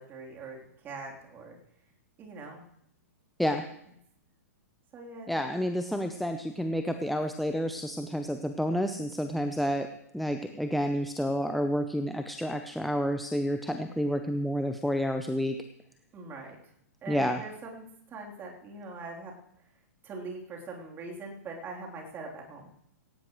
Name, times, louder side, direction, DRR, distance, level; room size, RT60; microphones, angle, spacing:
voice 1, 0.0-1.6 2.2-2.6 4.9-5.6 16.1-16.6 17.0-19.4 20.0-22.7, right 3 dB, 25° right, 0 dB, 3.5 m, -42 dB
voice 2, 5.3-15.6 17.1-17.4, equal, ahead, 7 dB, 0.7 m, -30 dB
18.0 x 17.5 x 3.2 m, 0.74 s
figure-of-eight pair, 110°, 9 cm